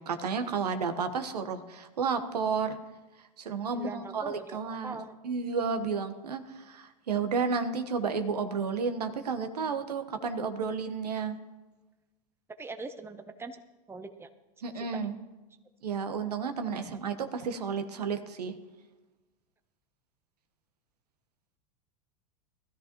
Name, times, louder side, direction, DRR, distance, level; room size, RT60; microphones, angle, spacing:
voice 1, 0.1-2.8 3.4-5.0 5.2-11.4 14.6-15.1 15.8-18.5, right 5 dB, 85° right, 8 dB, 1.2 m, -32 dB
voice 2, 3.7-5.1 12.6-13.6 13.9-14.3 14.7-15.0, right 3 dB, 10° right, 8 dB, 1.0 m, -41 dB
19.5 x 13.0 x 3.0 m, 1.1 s
hypercardioid pair, 95°, 20 cm